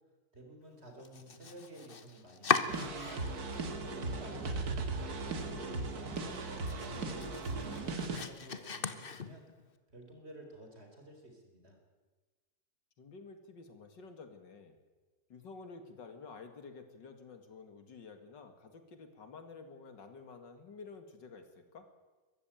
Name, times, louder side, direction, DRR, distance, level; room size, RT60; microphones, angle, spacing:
voice 1, 0.3-2.9 3.8-6.3 6.8-9.5 9.9-11.8, right 1 dB, 35° right, 3 dB, 4.6 m, -53 dB
Domestic sounds home sounds, 1.0-3.5 3.9-4.6 5.0-5.1 5.5-5.6 6.0-9.7, left 5 dB, 35° left, 1.1 m, -38 dB
sound 1, 2.7-8.2, right 3 dB, 60° right, 2.3 m, -37 dB
voice 2, 13.0-14.8 15.3-21.9, left 4 dB, 80° left, 8 dB, 2.7 m, -51 dB
22.5 x 14.0 x 9.1 m, 1.3 s
omnidirectional pair, 1.9 m